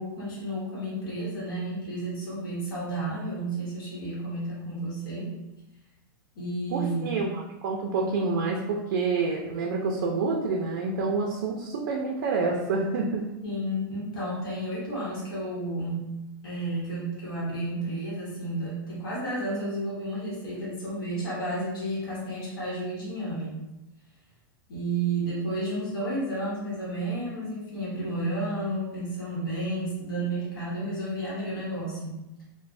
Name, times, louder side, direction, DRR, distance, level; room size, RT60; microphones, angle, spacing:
voice 1, 0.0-5.4 6.3-7.2 13.4-16.1 16.4-23.6 24.7-32.4, right 1 dB, 70° left, -6 dB, 1.0 m, -32 dB
voice 2, 6.7-13.2, right 4 dB, 50° right, -1 dB, 0.4 m, -28 dB
2.9 x 2.0 x 2.5 m, 0.96 s
supercardioid pair, 175°, 12 cm